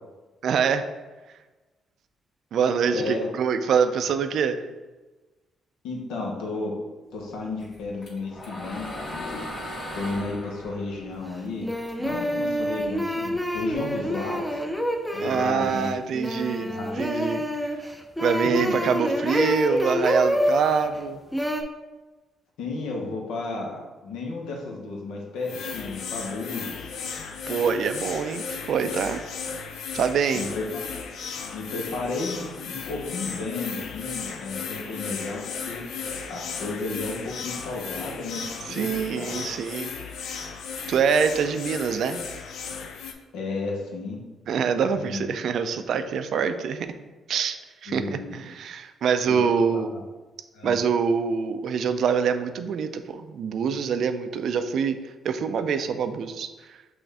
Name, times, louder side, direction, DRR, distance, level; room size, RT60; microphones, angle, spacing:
voice 1, 0.4-0.8 2.5-4.6 15.2-16.7 17.0-17.7 18.2-21.2 27.5-29.2 29.9-30.4 38.7-39.9 40.2-40.5 40.9-42.2 44.5-46.9 47.3-47.6 47.8-49.9 50.6-55.0 55.2-56.5, right 6 dB, 70° right, 9 dB, 0.4 m, -25 dB
voice 2, 2.9-3.3 5.8-6.7 7.1-9.5 9.9-11.7 12.0-14.6 15.1-15.9 16.6-17.0 18.4-18.8 22.6-26.9 30.3-31.0 31.5-35.8 36.3-39.5 43.3-44.2 44.9-45.3 47.9-48.4 49.3-50.0 50.5-50.8, left 3 dB, 90° left, -1 dB, 0.9 m, -33 dB
sound 1, 7.6-12.1 12.5-14.1, left 1 dB, 55° left, 1.3 m, -38 dB
sound 2, 11.1-11.2 11.6-20.9 21.3-21.6, equal, 5° left, 0.5 m, -27 dB
sound 3, 25.4-43.1, left 6 dB, 75° left, 0.5 m, -35 dB
6.1 x 2.5 x 3.4 m, 1.2 s
cardioid pair, 90°, 0 cm